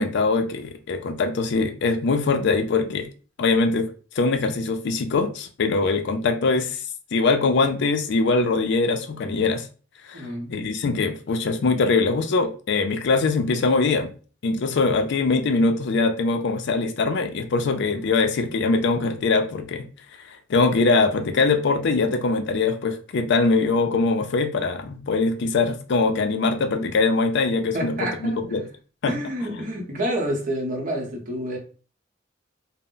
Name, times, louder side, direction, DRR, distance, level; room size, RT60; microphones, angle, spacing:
voice 1, 0.0-3.1 3.4-3.9 4.2-6.8 7.1-9.7 10.1-14.1 14.4-19.9 20.2-28.7 29.0-29.1, left 3 dB, 60° left, 0.4 m, -22 dB
voice 2, 10.1-10.6 27.7-28.4 29.0-31.6, equal, 45° right, 0.8 m, -28 dB
2.1 x 2.0 x 3.7 m
head